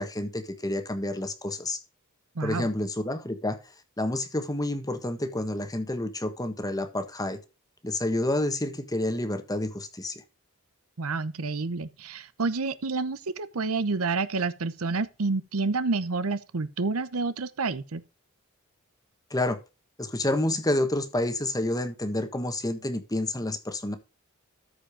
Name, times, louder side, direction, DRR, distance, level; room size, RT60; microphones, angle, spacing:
voice 1, 0.0-1.8 2.4-3.6 4.0-7.4 7.8-10.2 19.3-19.6 20.0-24.0, left 1 dB, 15° left, 1.3 m, -29 dB
voice 2, 2.4-2.7 11.0-18.0, right 3 dB, 75° right, 0.8 m, -29 dB
13.5 x 5.1 x 5.1 m
head